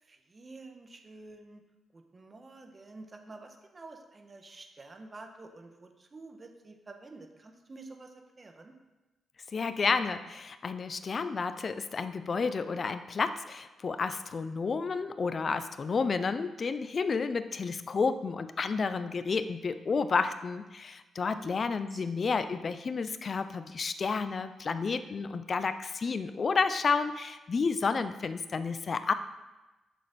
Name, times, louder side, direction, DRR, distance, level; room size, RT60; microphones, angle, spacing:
voice 1, 0.0-1.6 1.9-8.7 21.9-22.6, right 3 dB, 40° right, 5 dB, 1.4 m, -49 dB
voice 2, 9.5-29.1, left 5 dB, 50° left, 11 dB, 0.6 m, -31 dB
9.2 x 6.6 x 4.3 m, 1.1 s
supercardioid pair, 50°, 0 cm